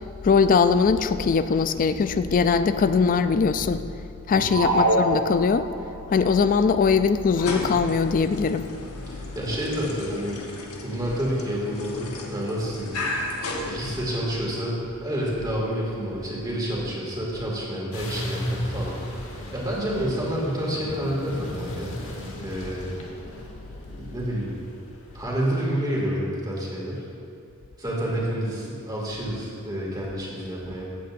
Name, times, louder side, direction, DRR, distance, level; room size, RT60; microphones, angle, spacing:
voice 1, 0.2-3.8 4.3-5.7 6.1-8.7, left 5 dB, 40° left, 11 dB, 0.3 m, -21 dB
sound 1, 4.5-5.9, right 1 dB, 85° right, 1.5 m, -24 dB
sound 2, 7.2-14.4, left 2 dB, 85° left, 1.2 m, -35 dB
voice 2, 9.1-10.4 10.8-12.9 13.6-19.0 19.5-22.0 22.4-22.8 23.8-24.5 25.1-27.0 27.8-30.8, equal, 20° right, -4 dB, 2.2 m, -29 dB
sound 3, 17.9-25.3, equal, 65° left, 1.6 m, -35 dB
15.5 x 8.4 x 2.6 m, 2.6 s
head